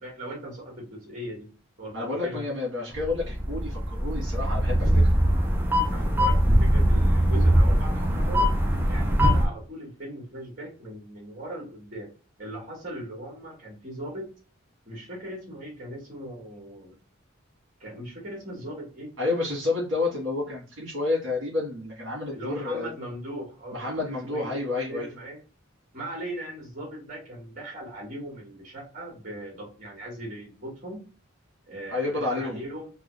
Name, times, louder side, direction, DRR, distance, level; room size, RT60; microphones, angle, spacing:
voice 1, 0.0-1.5 1.8-2.5 5.9-8.6 8.9-12.1 12.4-14.3 14.9-17.0 17.8-19.1 22.3-25.4 25.9-31.0 31.7-32.9, right 1 dB, 40° right, -2 dB, 1.9 m, -39 dB
voice 2, 1.9-5.1 19.2-22.9 23.7-25.1 31.9-32.6, left 3 dB, 65° right, -4 dB, 1.7 m, -30 dB
sound 1, 2.9-9.5, equal, 10° right, 0.7 m, -22 dB
3.8 x 2.3 x 3.2 m, 0.36 s
head